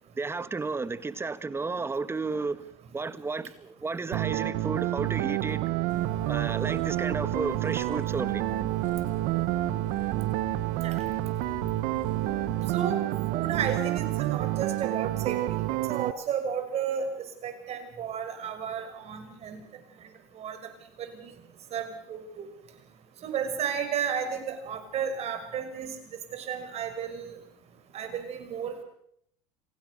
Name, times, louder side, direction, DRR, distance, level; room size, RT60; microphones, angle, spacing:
voice 1, 0.2-2.6 2.9-5.7 6.3-8.4, right 4 dB, 15° right, 1.6 m, -32 dB
sound 1, 4.1-16.1, right 17 dB, 60° right, 1.3 m, -29 dB
sound 2, 5.9-12.8, left 8 dB, 50° left, 4.4 m, -45 dB
voice 2, 13.3-15.4 15.7-17.1 17.4-19.6 20.4-20.6 21.2-21.3 21.7-22.5 23.2-25.9 26.3-27.4 27.9-28.8, right 7 dB, 40° right, 6.1 m, -33 dB
27.5 x 17.5 x 6.5 m
supercardioid pair, 105°, 16 cm